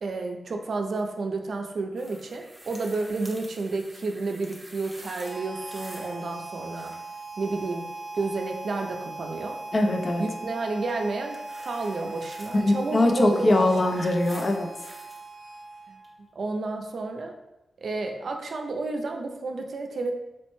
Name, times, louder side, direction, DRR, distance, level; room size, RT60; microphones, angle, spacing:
voice 1, 0.0-7.0 7.4-7.9 8.1-9.6 10.2-13.7 15.9-16.0 16.4-17.4 17.8-20.1, right 3 dB, 70° right, 3 dB, 0.4 m, -31 dB
sound 1, 2.0-6.2 6.5-7.2 10.9-12.6 13.4-15.2 16.0-16.1, right 1 dB, 15° right, 0.6 m, -47 dB
Harmonica, 5.2-16.2, right 2 dB, 45° right, 0.9 m, -40 dB
voice 2, 9.7-10.2 12.5-14.7, left 2 dB, 45° left, 3 dB, 0.4 m, -22 dB
4.2 x 2.1 x 3.0 m, 0.97 s
cardioid pair, 85°, 0 cm